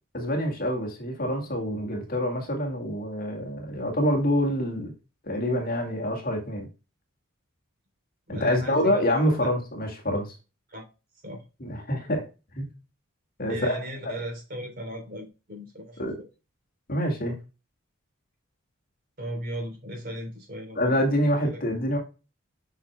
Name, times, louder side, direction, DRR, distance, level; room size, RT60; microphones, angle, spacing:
voice 1, 0.1-4.9 5.2-6.7 8.3-10.3 11.6-12.2 12.6-12.7 13.4-13.8 16.0-16.1 16.9-17.4 20.8-22.0, equal, 45° left, 2 dB, 2.0 m, -26 dB
voice 2, 8.3-9.5 10.7-10.8 11.2-11.4 13.5-16.3 19.2-21.6, equal, 45° right, 1 dB, 3.6 m, -37 dB
8.3 x 6.2 x 2.2 m, 0.30 s
head